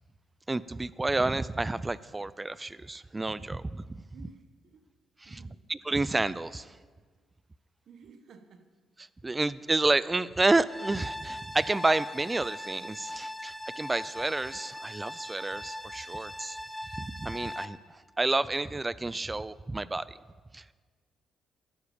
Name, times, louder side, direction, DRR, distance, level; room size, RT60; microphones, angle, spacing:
voice 1, 0.5-4.0 5.2-5.4 5.7-6.8 9.0-16.6 17.0-20.2 20.5-20.6, right 2 dB, 20° right, 18 dB, 0.4 m, -30 dB
voice 2, 4.1-4.9 5.2-5.6 7.9-8.6, right 5 dB, 65° right, 7 dB, 1.4 m, -53 dB
sound 1, 10.7-17.7, left 1 dB, 5° left, 0.8 m, -40 dB
13.0 x 10.5 x 5.1 m, 1.5 s
cardioid pair, 90°, 0 cm